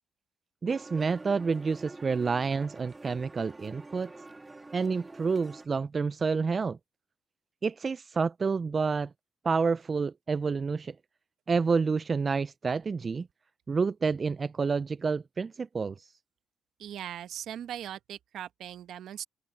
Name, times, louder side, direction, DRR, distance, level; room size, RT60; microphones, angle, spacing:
voice 1, 0.6-4.1 4.7-6.8 7.6-9.1 9.4-10.9 11.5-13.3 13.7-16.1, right 5 dB, 35° right, 0.3 m, -29 dB
sound 1, 0.7-5.7, right 2 dB, 20° right, 2.7 m, -47 dB
voice 2, 16.8-19.2, right 10 dB, 75° right, 1.0 m, -39 dB
open air
cardioid pair, 90°, 0 cm